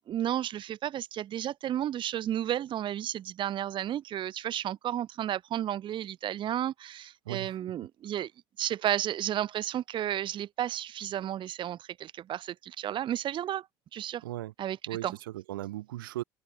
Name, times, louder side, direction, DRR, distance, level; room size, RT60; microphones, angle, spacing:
voice 1, 0.0-8.3 8.6-13.7 13.9-14.2 14.6-14.8 15.0-15.2, right 11 dB, 45° right, 0.6 m, -32 dB
voice 2, 7.3-7.6 14.2-14.5 14.9-16.2, right 15 dB, 90° right, 0.6 m, -37 dB
hypercardioid pair, 70°, 11 cm